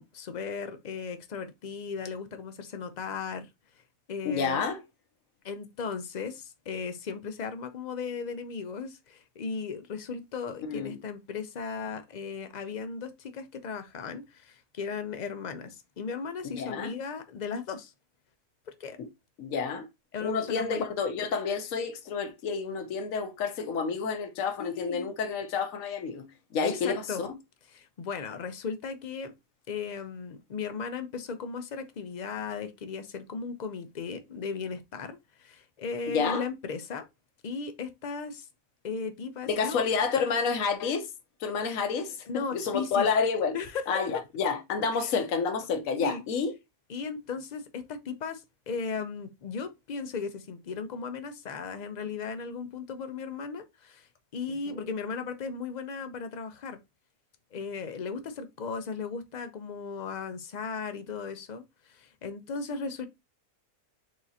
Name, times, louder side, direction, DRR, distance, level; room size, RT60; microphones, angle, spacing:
voice 1, 0.0-3.5 4.1-4.6 5.4-17.9 18.8-19.0 20.1-20.8 24.6-25.1 26.6-27.2 27.7-29.3 29.7-37.1 37.4-38.5 38.8-39.8 42.3-43.1 43.5-43.8 44.9-45.1 46.0-46.2 46.9-54.1 54.3-56.8 57.5-63.1, left 5 dB, 50° left, 0.5 m, -36 dB
voice 2, 4.2-4.8 10.6-10.9 16.5-16.9 19.0-19.1 19.4-19.9 20.2-26.2 26.5-27.3 36.1-36.5 39.5-41.1 41.4-43.6 43.9-46.5 54.7-54.8, left 5 dB, 75° left, 1.2 m, -29 dB
4.7 x 3.7 x 2.7 m
omnidirectional pair, 1.5 m